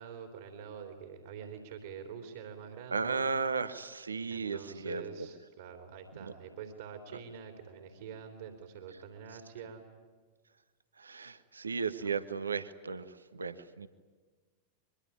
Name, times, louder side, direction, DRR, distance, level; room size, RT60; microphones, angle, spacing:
voice 1, 0.0-3.3 4.3-9.8 12.0-12.1, right 7 dB, 60° right, 5 dB, 3.3 m, -46 dB
voice 2, 2.9-5.3 6.2-6.3 11.0-13.1 13.3-13.9, right 5 dB, 75° right, 13 dB, 1.3 m, -35 dB
24.5 x 23.5 x 10.0 m, 1.4 s
figure-of-eight pair, 90°, 0 cm